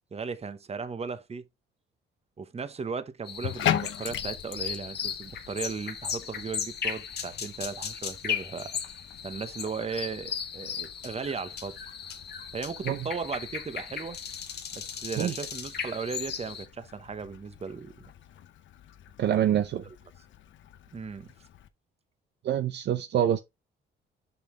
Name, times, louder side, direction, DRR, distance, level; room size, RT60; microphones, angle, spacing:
voice 1, 0.1-1.4 2.4-8.7 9.2-11.8 12.5-14.2 14.7-17.9 20.9-21.3, right 5 dB, 30° right, 1.0 m, -36 dB
sound 1, 3.2-16.6, left 7 dB, 55° left, 1.3 m, -37 dB
Bathtub (filling or washing), 3.3-21.7, left 11 dB, 70° left, 0.8 m, -40 dB
voice 2, 19.2-19.8 22.4-23.4, right 10 dB, 60° right, 0.6 m, -25 dB
6.9 x 5.9 x 3.3 m
cardioid pair, 90°, 20 cm